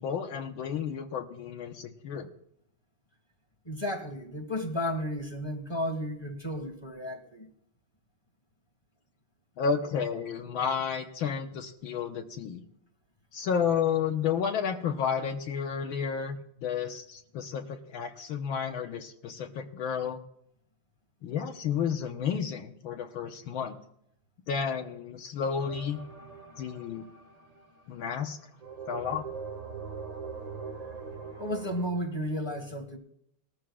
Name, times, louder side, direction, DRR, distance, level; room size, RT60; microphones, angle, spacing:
voice 1, 0.0-2.3 9.6-12.6 13.3-20.2 21.2-23.8 24.5-26.0 26.6-27.1 27.9-28.4 28.9-29.2, left 7 dB, 75° left, 3 dB, 1.6 m, -31 dB
voice 2, 3.6-7.5 31.4-33.0, equal, 15° left, 5 dB, 1.3 m, -33 dB
sound 1, 25.6-28.0 28.6-31.9, right 5 dB, 20° right, 1.5 m, -42 dB
20.0 x 13.5 x 2.3 m, 0.73 s
omnidirectional pair, 2.3 m